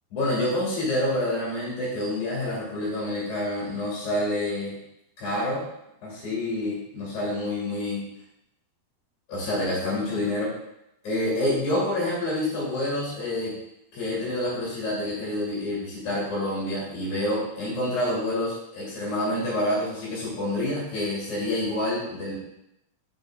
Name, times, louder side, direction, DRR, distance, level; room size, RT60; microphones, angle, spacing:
voice 1, 0.1-4.7 5.2-5.6 6.0-8.1 9.3-10.5 11.0-13.6 13.9-22.4, left 1 dB, 55° left, -7 dB, 3.8 m, -27 dB
6.5 x 6.3 x 3.6 m, 0.84 s
omnidirectional pair, 4.3 m